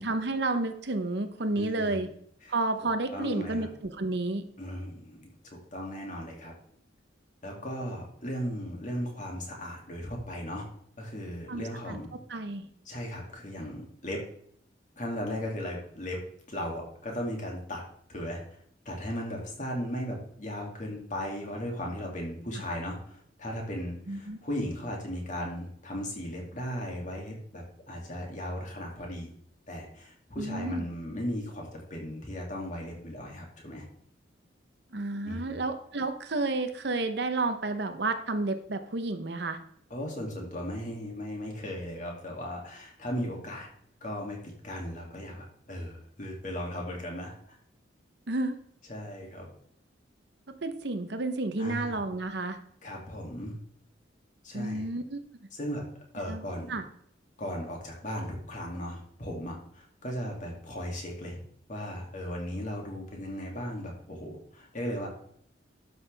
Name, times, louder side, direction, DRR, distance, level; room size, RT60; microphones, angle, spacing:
voice 1, 0.0-2.1 2.5-4.4 11.5-12.0 12.3-12.7 24.1-24.4 30.4-30.9 34.9-39.6 48.3-48.6 50.5-52.6 54.5-55.2 56.2-56.4 56.7-56.8, right 2 dB, 60° right, 9 dB, 0.9 m, -31 dB
voice 2, 1.6-2.0 2.4-2.5 3.1-3.7 4.6-6.5 7.4-10.7 11.0-12.1 12.9-14.2 15.0-16.2 16.5-17.8 18.1-18.4 18.8-29.3 29.7-33.9 35.2-35.6 39.9-43.7 44.0-47.6 48.9-49.5 51.6-52.0 52.8-53.6 54.4-54.9 55.5-55.8 56.1-56.7 57.4-61.4 61.7-65.1, equal, 40° left, -1 dB, 2.5 m, -37 dB
11.5 x 6.4 x 3.4 m, 0.66 s
head